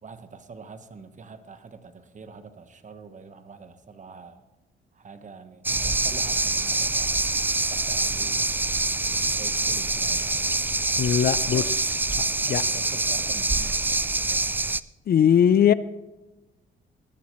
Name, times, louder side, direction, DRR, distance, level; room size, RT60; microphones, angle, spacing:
voice 1, 0.0-4.4 4.9-7.4 7.7-8.5 9.4-10.8 12.2-14.6, right 5 dB, 40° right, 9 dB, 1.2 m, -45 dB
sound 1, 5.6-14.8, right 2 dB, 10° right, 0.3 m, -25 dB
voice 2, 11.0-12.0 12.5-12.6 15.1-15.7, left 9 dB, 50° left, 17 dB, 0.6 m, -20 dB
19.5 x 12.5 x 3.2 m, 1.1 s
cardioid pair, 90°, 20 cm